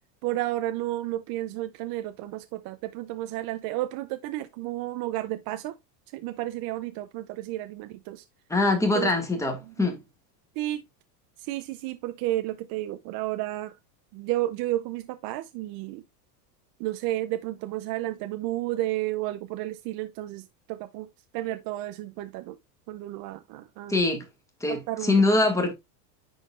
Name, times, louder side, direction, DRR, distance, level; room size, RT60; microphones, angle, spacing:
voice 1, 0.2-5.8 6.1-8.2 8.9-9.1 9.6-10.0 10.6-10.8 11.4-13.8 14.1-16.0 16.8-21.1 21.3-22.6 22.9-24.0 24.7-25.5, right 15 dB, 45° right, 0.6 m, -32 dB
voice 2, 8.5-10.0 23.9-24.2 24.6-25.7, left 2 dB, 5° left, 1.7 m, -23 dB
10.0 x 4.0 x 2.4 m
supercardioid pair, 135°, 48 cm